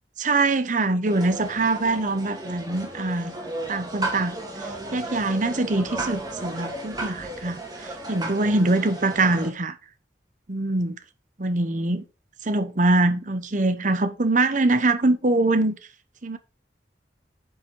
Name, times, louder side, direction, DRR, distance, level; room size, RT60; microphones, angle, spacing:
voice 1, 0.2-3.3 3.7-4.3 4.6-9.8 10.5-11.0 11.4-12.0 12.4-15.8 16.2-16.4, right 2 dB, 45° right, 1.0 m, -23 dB
sound 1, 1.1-9.5, right 2 dB, 25° right, 2.5 m, -34 dB
9.8 x 5.7 x 3.9 m
head